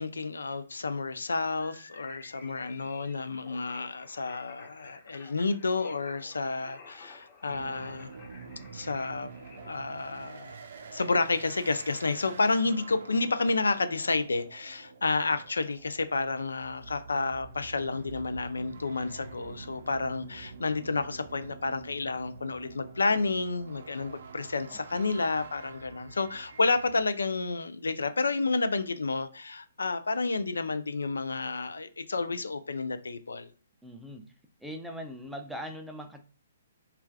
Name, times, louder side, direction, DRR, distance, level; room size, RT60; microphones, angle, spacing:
voice 1, 0.0-8.1 8.7-9.3 9.6-10.6 10.9-33.5, left 3 dB, 85° left, 0.3 m, -30 dB
sound 1, 1.6-9.7, left 4 dB, 30° left, 0.8 m, -52 dB
sound 2, 7.5-27.0, right 5 dB, 65° right, 0.5 m, -47 dB
voice 2, 24.7-25.2 33.8-34.3 34.6-36.2, equal, 5° right, 0.4 m, -41 dB
3.2 x 2.3 x 2.3 m
hypercardioid pair, 140°, 0 cm